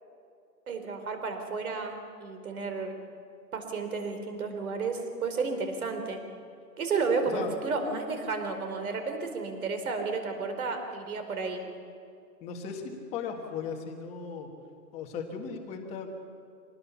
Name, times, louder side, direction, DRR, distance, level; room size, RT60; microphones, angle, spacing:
voice 1, 0.7-3.0 3.5-6.2 6.8-11.6, right 4 dB, 55° right, 6 dB, 4.4 m, -32 dB
voice 2, 12.4-14.5 14.9-16.1, left 6 dB, 15° left, 2 dB, 1.7 m, -37 dB
26.0 x 19.0 x 7.2 m, 2.4 s
hypercardioid pair, 160°, 49 cm